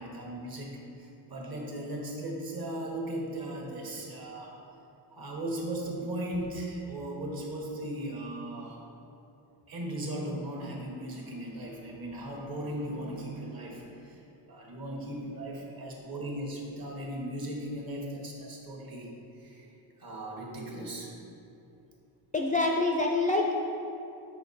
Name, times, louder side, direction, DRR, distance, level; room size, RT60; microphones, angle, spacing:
voice 1, 0.0-4.5 5.1-8.8 9.7-14.2 14.5-19.1 19.4-19.7 20.0-21.1, right 1 dB, 50° right, -1 dB, 1.3 m, -37 dB
voice 2, 22.3-23.5, left 2 dB, 20° left, -1 dB, 0.3 m, -26 dB
6.0 x 4.9 x 4.1 m, 2.8 s
cardioid pair, 110°, 46 cm